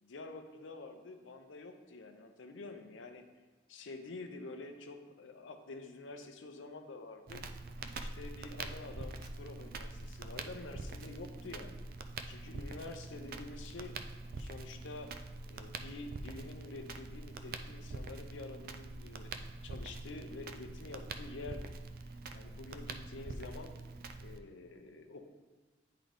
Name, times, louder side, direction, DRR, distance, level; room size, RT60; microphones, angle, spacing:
voice 1, 0.0-3.2 3.7-7.4 7.9-11.8 12.3-14.0 14.4-15.1 15.5-19.3 19.6-21.7 22.3-23.8 24.2-25.3, left 3 dB, 85° left, 6 dB, 0.7 m, -48 dB
Crackle, 7.3-24.4, right 3 dB, 50° right, 0.4 m, -45 dB
9.8 x 3.8 x 3.4 m, 1.4 s
head